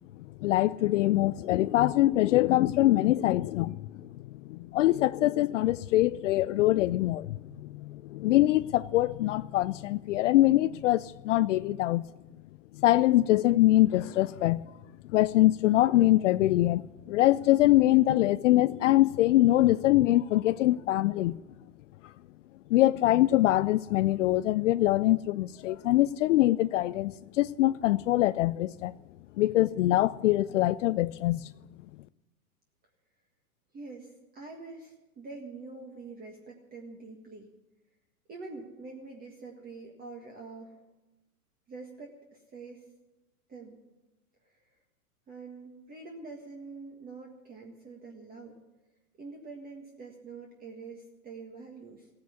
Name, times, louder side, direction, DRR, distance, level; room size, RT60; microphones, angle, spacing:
voice 1, 0.4-4.1 4.5-12.1 12.7-14.6 15.1-21.4 22.7-28.9 29.4-31.5, left 15 dB, 55° left, 0.5 m, -24 dB
voice 2, 33.7-37.5 38.3-40.8 41.7-42.9 43.5-43.7 44.4-44.6 45.3-48.6 49.2-52.1, right 3 dB, 20° right, 1.7 m, -45 dB
16.5 x 9.5 x 8.2 m
hypercardioid pair, 130°, 45 cm